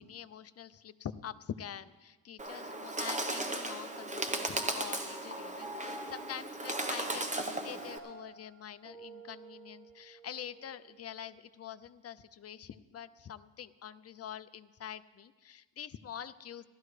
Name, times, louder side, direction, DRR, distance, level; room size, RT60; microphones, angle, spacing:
voice 1, 0.0-16.7, left 9 dB, 35° left, 13 dB, 0.4 m, -45 dB
Bird, 2.4-8.0, right 2 dB, 15° right, 0.9 m, -36 dB
Piano, 4.6-11.3, right 1 dB, 65° right, 2.1 m, -51 dB
17.5 x 13.0 x 3.3 m, 1.3 s
wide cardioid pair, 140°, 43 cm